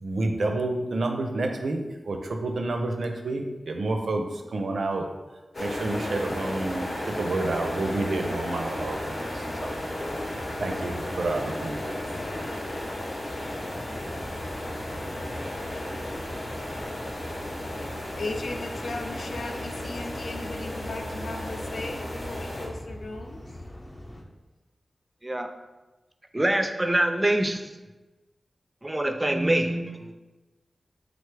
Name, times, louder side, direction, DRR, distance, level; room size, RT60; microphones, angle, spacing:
voice 1, 0.0-4.2 4.5-5.1 5.6-9.3 9.6-9.7 10.6-11.9, right 2 dB, 80° right, 4 dB, 0.4 m, -29 dB
sound 1, 5.5-22.7, left 1 dB, 60° left, 0.8 m, -34 dB
sound 2, 8.7-24.2, left 1 dB, 35° left, 0.7 m, -42 dB
voice 2, 18.1-23.4, left 2 dB, 80° left, 3 dB, 0.3 m, -37 dB
voice 3, 26.3-27.7 28.8-30.1, right 1 dB, 20° right, 7 dB, 0.4 m, -25 dB
3.9 x 3.3 x 3.2 m, 1.1 s
wide cardioid pair, 70°, 0 cm